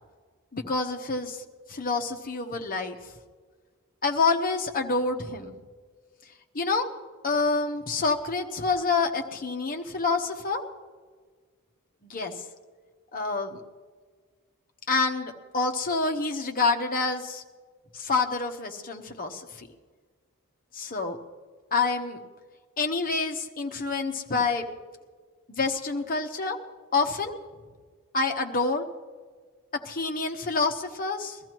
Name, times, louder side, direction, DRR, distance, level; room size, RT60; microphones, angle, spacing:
voice 1, 0.5-1.4 1.7-3.0 4.0-5.5 6.5-6.9 7.2-10.6 12.0-12.3 13.1-13.6 14.9-17.4 17.9-19.7 20.7-21.2 21.7-22.2 22.8-24.7 25.5-26.6 26.9-27.3 28.1-28.9 29.8-31.4, left 4 dB, 40° left, 4 dB, 1.0 m, -27 dB
22.0 x 14.0 x 3.0 m, 1.5 s
head